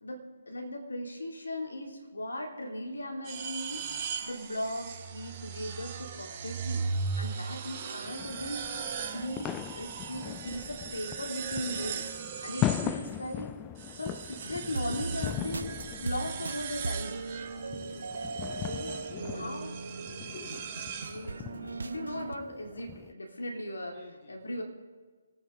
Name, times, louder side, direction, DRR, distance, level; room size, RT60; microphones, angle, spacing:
voice 1, 0.0-3.9 4.2-6.9 7.2-8.7 9.0-12.1 12.4-13.6 13.9-17.2 18.6-19.0 19.3-19.7 21.0-24.0 24.3-24.6, left 1 dB, 75° left, 2 dB, 3.2 m, -38 dB
sound 1, 3.2-13.4 13.8-21.6, right 5 dB, 30° right, 1.7 m, -39 dB
sound 2, 8.0-23.1, left 13 dB, 20° left, 0.3 m, -39 dB
sound 3, 14.4-22.4, right 4 dB, 70° right, 0.4 m, -39 dB
voice 2, 17.8-18.2 19.1-19.8 20.2-20.7 23.9-24.6, left 4 dB, 35° left, 3 dB, 1.7 m, -49 dB
25.5 x 9.6 x 4.0 m, 1.4 s
figure-of-eight pair, 140°, 0 cm